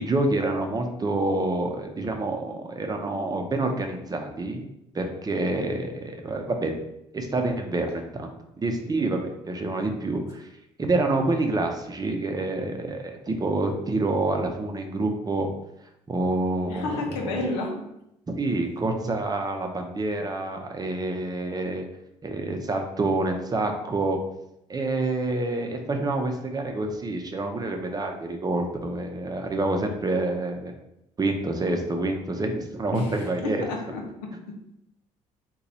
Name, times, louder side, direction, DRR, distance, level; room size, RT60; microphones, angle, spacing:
voice 1, 0.0-4.7 4.9-6.7 7.1-8.3 8.6-10.5 10.8-15.5 16.1-17.3 18.3-21.8 22.2-24.2 24.7-30.7 31.2-33.7, right 2 dB, 30° right, 3 dB, 0.6 m, -27 dB
voice 2, 16.7-17.8 32.9-34.6, left 2 dB, 90° left, 2 dB, 0.6 m, -31 dB
2.9 x 2.3 x 4.0 m, 0.82 s
supercardioid pair, 65°, 14 cm